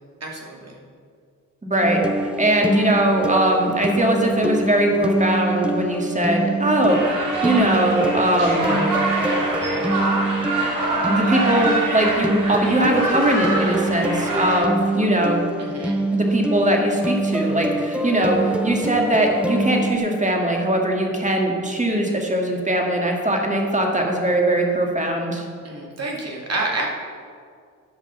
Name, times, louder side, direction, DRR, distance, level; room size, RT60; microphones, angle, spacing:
voice 1, 0.2-0.6 15.6-16.0 25.6-26.9, right 2 dB, 50° right, -2 dB, 2.5 m, -28 dB
voice 2, 1.6-2.0 2.4-8.8 11.0-15.5 16.1-25.4, right 1 dB, 20° right, 1 dB, 2.1 m, -21 dB
sound 1, 1.8-20.0, right 2 dB, 5° right, 0.8 m, -25 dB
sound 2, 6.9-14.6, right 2 dB, 70° right, 2.8 m, -25 dB
11.5 x 5.1 x 7.0 m, 2.1 s
cardioid pair, 55°, 33 cm